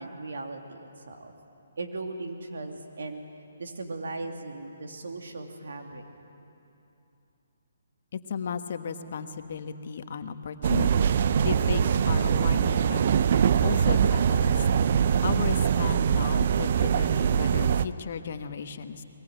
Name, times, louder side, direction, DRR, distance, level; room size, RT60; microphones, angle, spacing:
voice 1, 0.0-1.3 1.8-3.2 3.6-6.0, right 3 dB, 75° right, 3 dB, 2.7 m, -38 dB
voice 2, 8.1-13.0 13.6-14.7 15.2-19.0, left 6 dB, 55° left, 8 dB, 1.3 m, -35 dB
sound 1, 10.6-17.8, right 7 dB, 50° right, 0.6 m, -23 dB
22.0 x 22.0 x 9.1 m, 2.8 s
hypercardioid pair, 145°, 0 cm